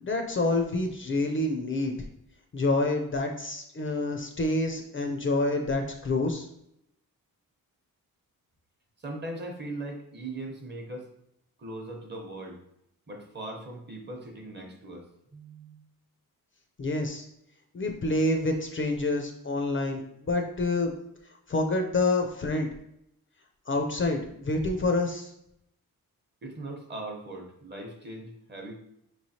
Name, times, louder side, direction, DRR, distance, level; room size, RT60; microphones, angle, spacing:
voice 1, 0.0-1.9 2.5-6.5 16.8-17.2 17.7-20.9 21.5-22.7 23.7-25.3, left 2 dB, 35° left, 4 dB, 0.4 m, -27 dB
voice 2, 9.0-11.1 11.6-12.6 13.1-15.8 26.4-28.8, right 2 dB, 30° right, 2 dB, 0.8 m, -39 dB
5.3 x 3.1 x 2.7 m, 0.77 s
wide cardioid pair, 145°, 35 cm